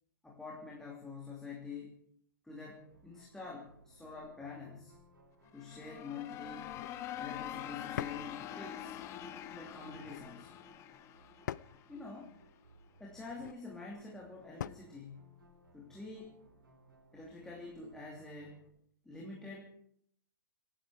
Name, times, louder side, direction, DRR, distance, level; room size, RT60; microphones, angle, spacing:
voice 1, 0.2-2.0 2.4-5.0 5.5-6.8 7.2-9.0 9.5-10.6 11.9-12.4 13.0-15.4 15.7-16.4 17.1-18.7 19.0-19.7, left 4 dB, 5° left, -3 dB, 2.9 m, -47 dB
sound 1, 2.7-18.7, right 2 dB, 75° right, 6.0 m, -63 dB
sound 2, 5.5-12.2, left 11 dB, 25° left, 1.3 m, -45 dB
sound 3, 6.6-7.0 8.0-8.3 9.8-10.3 11.5-11.8 13.2-13.6 14.6-14.9, left 10 dB, 55° left, 0.5 m, -43 dB
26.5 x 10.0 x 4.9 m, 0.66 s
figure-of-eight pair, 120°, 11 cm